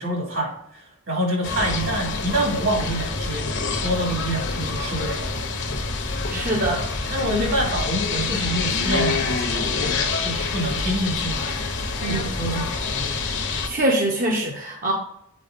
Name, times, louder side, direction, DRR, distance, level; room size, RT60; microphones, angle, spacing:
voice 1, 0.0-3.5 3.8-5.4 6.3-6.4 7.1-11.5 12.1-13.1, right 1 dB, 65° right, -1 dB, 2.7 m, -27 dB
sound 1, 1.4-13.7, left 4 dB, 55° left, 1.1 m, -26 dB
voice 2, 6.3-7.5 12.0-12.3 13.7-14.9, right 1 dB, 40° right, -1 dB, 1.0 m, -24 dB
8.3 x 4.7 x 3.9 m, 0.74 s
head